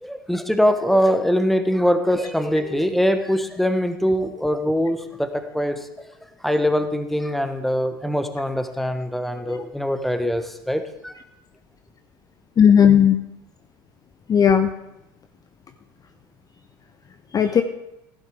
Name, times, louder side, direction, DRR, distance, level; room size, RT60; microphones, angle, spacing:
voice 1, 0.0-6.1 6.4-11.2, equal, ahead, 8 dB, 1.1 m, -22 dB
voice 2, 12.6-13.2 14.3-14.7 17.3-17.6, left 8 dB, 30° left, 9 dB, 0.7 m, -15 dB
16.0 x 11.5 x 3.5 m, 0.89 s
figure-of-eight pair, 65°, 13 cm